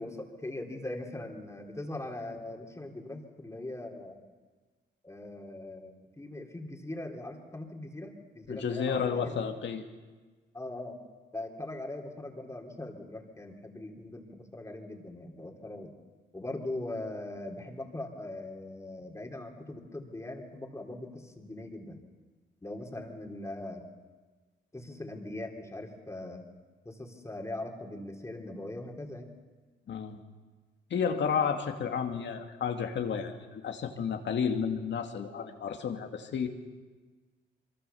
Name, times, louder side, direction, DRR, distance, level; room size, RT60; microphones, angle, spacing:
voice 1, 0.0-4.2 5.0-9.4 10.5-11.0 11.3-16.0 16.3-22.0 22.6-23.9 24.7-26.5 26.9-29.3, left 2 dB, 15° left, 2 dB, 3.5 m, -41 dB
voice 2, 8.5-9.9 29.9-30.2 30.9-36.5, left 7 dB, 65° left, 5 dB, 2.3 m, -31 dB
23.5 x 23.0 x 7.1 m, 1.4 s
cardioid pair, 85°, 20 cm